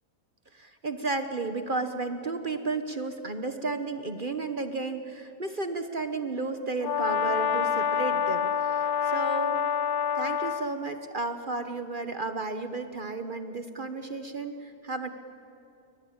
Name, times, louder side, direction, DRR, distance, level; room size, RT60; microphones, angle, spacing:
voice 1, 0.5-9.6 10.1-15.1, right 3 dB, 35° right, 8 dB, 1.2 m, -33 dB
Brass instrument, 6.8-10.7, left 7 dB, 75° left, 1.5 m, -27 dB
28.0 x 23.5 x 8.7 m, 2.8 s
omnidirectional pair, 1.6 m